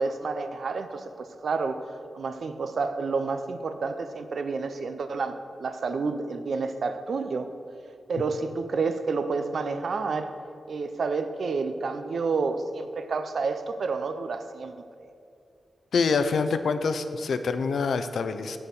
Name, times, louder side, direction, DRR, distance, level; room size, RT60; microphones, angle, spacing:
voice 1, 0.0-1.8 2.1-7.5 8.1-10.3 10.7-14.7, right 4 dB, 65° right, 9 dB, 0.6 m, -29 dB
voice 2, 15.9-18.6, left 4 dB, 80° left, 9 dB, 0.5 m, -26 dB
8.0 x 6.8 x 7.0 m, 2.5 s
wide cardioid pair, 135°, 0 cm